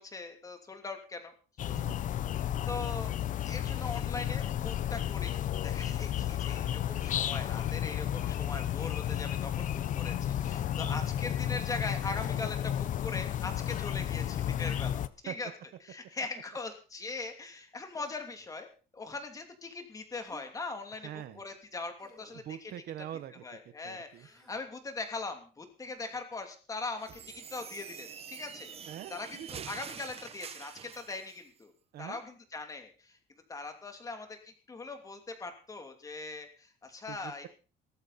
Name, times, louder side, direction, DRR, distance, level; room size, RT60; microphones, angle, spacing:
voice 1, 0.0-1.3 1.7-1.8 2.7-3.2 3.4-15.5 15.8-22.7 23.4-31.7 32.0-37.4, left 3 dB, 20° left, 5 dB, 2.8 m, -41 dB
sound 1, 1.6-15.1, left 11 dB, 45° left, 0.8 m, -32 dB
Human voice, 17.9-18.5 20.2-20.5 22.0-22.4 24.0-24.6 26.0-26.2 27.1-27.4 28.5-29.1 30.7-31.0, right 1 dB, 5° left, 5.8 m, -59 dB
voice 2, 21.0-21.4 22.3-24.3 28.9-29.5 31.9-32.2 37.1-37.5, right 12 dB, 60° right, 13 dB, 1.2 m, -44 dB
sound 2, 27.0-31.4, right 8 dB, 35° right, 1.1 m, -46 dB
18.5 x 14.0 x 4.2 m, 0.37 s
cardioid pair, 165°, 18 cm